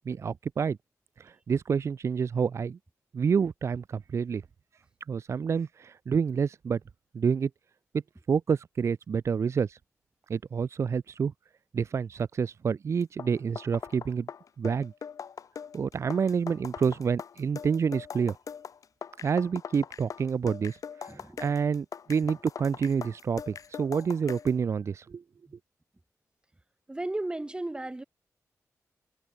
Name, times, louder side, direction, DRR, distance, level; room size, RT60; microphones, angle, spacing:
voice 1, 0.1-0.8 1.2-2.8 3.1-4.4 5.1-6.8 7.1-7.5 8.3-9.8 10.3-11.3 11.7-14.3 14.6-14.9 15.7-18.3 19.2-25.2, right 6 dB, 55° right, 0.5 m, -28 dB
sound 1, 13.0-24.6, left 7 dB, 75° left, 3.5 m, -41 dB
voice 2, 21.1-21.5 25.5-25.6 26.9-28.0, right 2 dB, 15° right, 1.8 m, -35 dB
wide cardioid pair, 115°, 6 cm